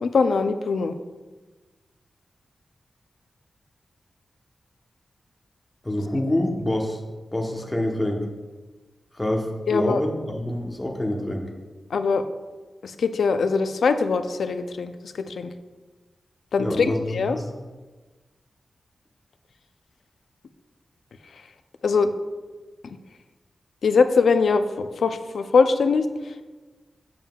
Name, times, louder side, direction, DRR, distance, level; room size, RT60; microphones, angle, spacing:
voice 1, 0.0-0.9 9.7-10.0 11.9-12.2 12.8-14.9 15.3-15.5 16.5-17.4 21.8-22.1 23.8-26.1, left 4 dB, 90° left, 9 dB, 0.4 m, -22 dB
voice 2, 5.8-7.0 7.3-8.3 9.1-11.5 16.6-17.5, left 1 dB, 15° left, 1 dB, 0.9 m, -26 dB
7.6 x 7.1 x 2.3 m, 1.3 s
wide cardioid pair, 140°, 0 cm